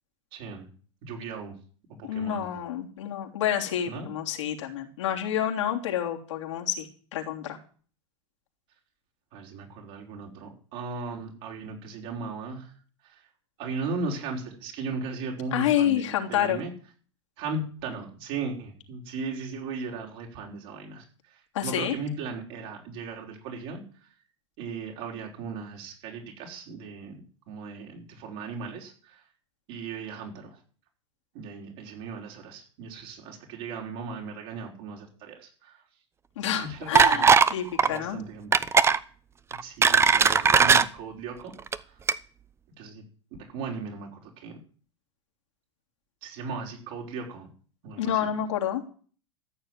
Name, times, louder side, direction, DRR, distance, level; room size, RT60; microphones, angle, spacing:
voice 1, 0.3-0.7 1.0-1.6 2.0-2.5 3.9-4.1 9.3-12.7 13.0-13.2 13.6-16.7 17.4-21.0 21.3-23.8 24.6-27.2 27.5-29.2 29.7-30.6 31.3-35.8 36.6-38.6 39.6-41.5 41.8-42.0 42.8-43.0 43.5-44.6 46.2-47.5 47.8-48.2, right 4 dB, 55° right, 0 dB, 5.3 m, -37 dB
voice 2, 2.0-6.9 7.1-7.6 15.5-16.6 21.5-21.9 36.4-38.2 48.0-48.8, left 10 dB, 75° left, 2 dB, 3.3 m, -28 dB
sound 1, 36.9-37.5 37.8-38.0 38.5-39.0 39.5-40.8 41.6-41.8 42.1-42.2, right 6 dB, 15° right, 0.7 m, -18 dB
14.0 x 6.9 x 9.4 m, 0.43 s
hypercardioid pair, 115°, 15 cm